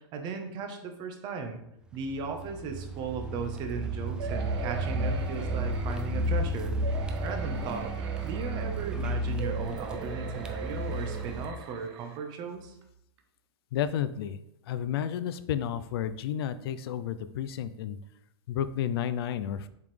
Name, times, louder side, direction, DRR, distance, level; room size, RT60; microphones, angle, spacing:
voice 1, 0.0-1.6 1.9-6.8 7.2-7.9 8.2-12.8, right 5 dB, 30° right, 5 dB, 1.0 m, -36 dB
Car, 2.0-11.5, right 1 dB, 5° right, 0.4 m, -32 dB
sound 1, 4.2-6.3 6.8-9.0 9.4-12.2 12.8-12.9 13.2-13.3, right 6 dB, 75° right, 1.2 m, -41 dB
voice 2, 13.7-14.4 14.7-18.0 18.5-19.7, left 9 dB, 65° left, 13 dB, 0.5 m, -31 dB
7.1 x 5.9 x 3.3 m, 0.78 s
supercardioid pair, 150°, 14 cm